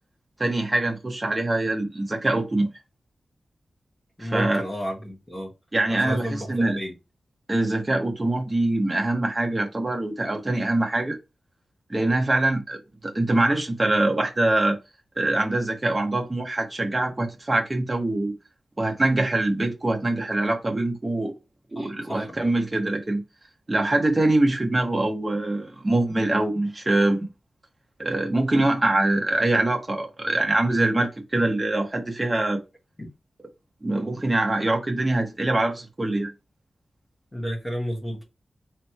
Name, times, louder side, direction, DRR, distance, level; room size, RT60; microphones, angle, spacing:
voice 1, 0.4-2.7 4.2-4.6 5.7-6.8 7.5-11.2 11.9-14.8 15.2-18.3 18.8-21.3 21.7-23.2 23.7-27.3 28.0-32.6 33.8-36.3, right 2 dB, 20° right, 0.9 m, -24 dB
voice 2, 4.2-5.5 5.9-6.9 21.7-22.5 33.0-33.1 37.3-38.2, equal, 15° left, 1.4 m, -31 dB
3.3 x 3.1 x 4.3 m
wide cardioid pair, 150°, 0 cm